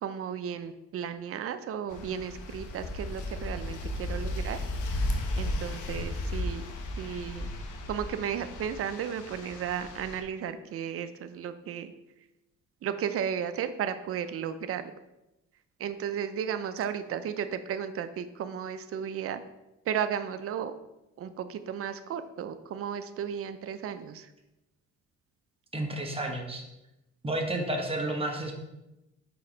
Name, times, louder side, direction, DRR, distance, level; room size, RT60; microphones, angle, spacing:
voice 1, 0.0-4.6 5.3-6.6 7.0-7.5 7.9-11.9 12.8-14.9 15.8-19.4 19.8-20.7 21.2-24.3, right 8 dB, 50° right, 10 dB, 0.5 m, -34 dB
sound 1, 1.9-10.2, left 1 dB, 80° left, 1.0 m, -35 dB
voice 2, 25.7-26.6 27.2-28.6, right 1 dB, 20° right, 2 dB, 1.2 m, -31 dB
4.7 x 4.2 x 5.1 m, 0.95 s
cardioid pair, 90°, 30 cm